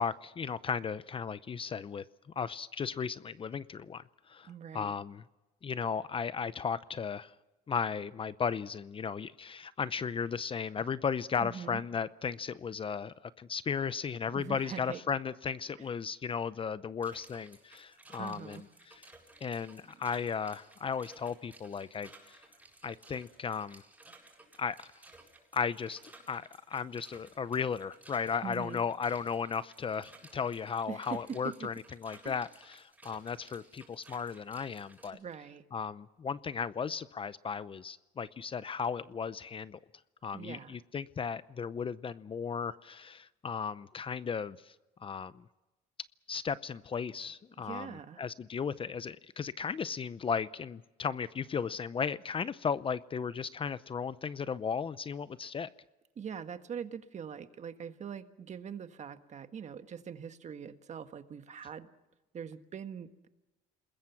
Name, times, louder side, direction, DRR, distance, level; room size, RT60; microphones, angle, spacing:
voice 1, 0.0-2.0 2.4-5.2 5.6-7.3 7.7-19.0 19.4-22.4 22.8-23.8 24.6-24.8 25.5-35.2 35.7-39.8 40.2-44.7 45.0-45.4 46.3-55.7, left 6 dB, 30° left, 16 dB, 0.7 m, -35 dB
voice 2, 4.4-4.9 11.4-11.8 14.3-15.0 15.8-15.9 18.2-18.6 28.4-28.8 30.9-31.7 32.2-32.4 35.1-35.6 40.3-40.8 47.5-48.2 56.2-61.9 62.3-63.3, right 7 dB, 45° right, 9 dB, 1.5 m, -43 dB
sound 1, 17.0-35.1, right 2 dB, 10° right, 7.7 m, -57 dB
29.0 x 21.0 x 5.9 m, 1.0 s
cardioid pair, 110°, 17 cm